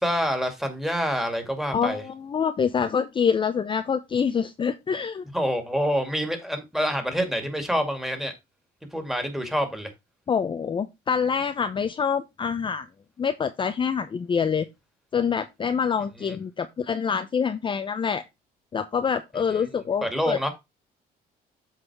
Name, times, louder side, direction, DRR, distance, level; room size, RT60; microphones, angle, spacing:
voice 1, 0.0-2.0 5.3-8.3 8.9-9.9 16.2-16.4 20.0-20.5, equal, ahead, 2.1 m, -27 dB
voice 2, 1.7-5.2 10.3-12.9 13.2-14.7 15.1-18.2 18.7-20.4, left 6 dB, 30° left, 0.6 m, -26 dB
7.8 x 4.1 x 4.7 m
cardioid pair, 110°, 17 cm